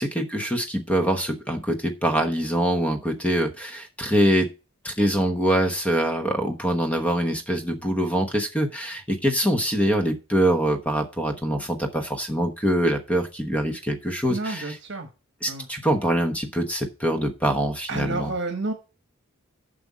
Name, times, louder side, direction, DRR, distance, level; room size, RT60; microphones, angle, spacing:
voice 1, 0.0-4.5 4.8-14.8 15.4-18.3, equal, 5° left, 5 dB, 1.0 m, -24 dB
voice 2, 14.3-15.1 15.5-15.7 17.9-18.7, right 3 dB, 55° right, 7 dB, 1.2 m, -30 dB
7.7 x 5.2 x 7.3 m, 0.32 s
head